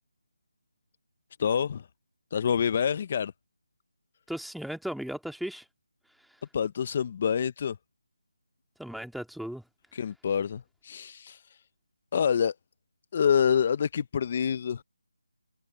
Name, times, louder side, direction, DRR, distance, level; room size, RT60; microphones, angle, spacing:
voice 1, 1.4-1.9 2.3-3.3 6.5-7.8 9.9-11.6 12.1-12.6 13.1-14.8, left 7 dB, 35° left, 0.6 m, -27 dB
voice 2, 4.3-5.7 8.8-9.6, equal, ahead, 2.1 m, -36 dB
figure-of-eight pair, 165°, 0 cm